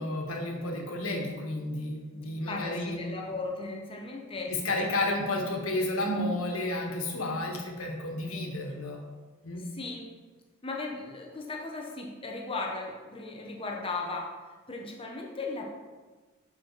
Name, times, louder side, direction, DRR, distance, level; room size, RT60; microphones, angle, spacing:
voice 1, 0.0-3.0 4.4-9.0 9.4-9.7, left 1 dB, 85° left, 1 dB, 1.3 m, -31 dB
voice 2, 2.5-4.5 4.8-5.2 6.2-6.3 9.6-10.1 10.6-14.3 14.7-15.6, left 3 dB, 25° left, 0 dB, 0.7 m, -37 dB
6.0 x 5.0 x 4.5 m, 1.3 s
head